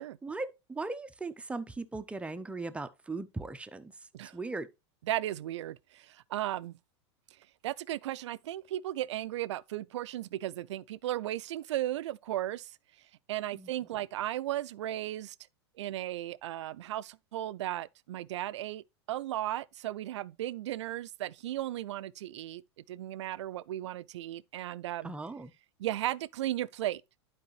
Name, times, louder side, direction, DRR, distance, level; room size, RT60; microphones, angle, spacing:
voice 1, 0.2-3.9 4.3-4.7 13.5-13.7 25.0-25.5, right 3 dB, 10° right, 0.6 m, -38 dB
voice 2, 5.0-6.7 7.6-12.7 13.3-15.3 15.8-22.6 22.9-25.1 25.8-27.0, right 13 dB, 80° right, 0.4 m, -35 dB
10.5 x 4.8 x 3.1 m
hypercardioid pair, 115°, 15 cm